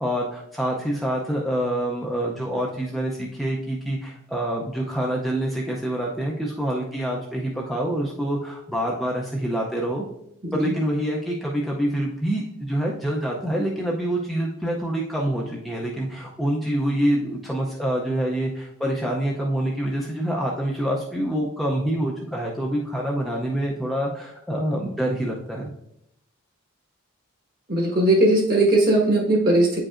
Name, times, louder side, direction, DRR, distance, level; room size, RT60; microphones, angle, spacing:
voice 1, 0.0-10.0 10.5-25.7, right 1 dB, ahead, -3 dB, 0.5 m, -26 dB
voice 2, 10.4-10.7 27.7-29.8, right 1 dB, 45° right, -2 dB, 1.4 m, -19 dB
8.6 x 4.9 x 2.5 m, 0.77 s
head